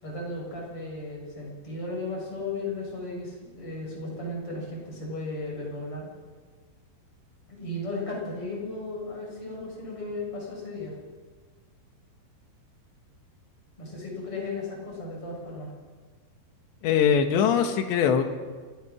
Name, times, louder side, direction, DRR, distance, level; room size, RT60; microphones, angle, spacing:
voice 1, 0.0-6.1 7.5-11.0 13.8-15.7, left 2 dB, 30° left, -2 dB, 8.0 m, -35 dB
voice 2, 16.8-18.2, left 7 dB, 75° left, 6 dB, 3.7 m, -22 dB
27.5 x 17.0 x 6.2 m, 1.5 s
omnidirectional pair, 5.3 m